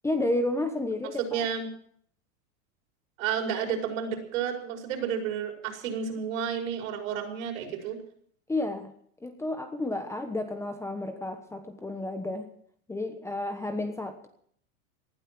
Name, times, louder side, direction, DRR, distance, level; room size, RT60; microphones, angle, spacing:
voice 1, 0.0-1.4 8.5-8.9 9.2-12.5 12.9-14.3, left 2 dB, 5° left, 7 dB, 1.2 m, -31 dB
voice 2, 1.2-1.7 3.2-8.0, right 7 dB, 70° right, 2 dB, 5.5 m, -31 dB
18.5 x 12.0 x 6.0 m, 0.63 s
supercardioid pair, 145°, 42 cm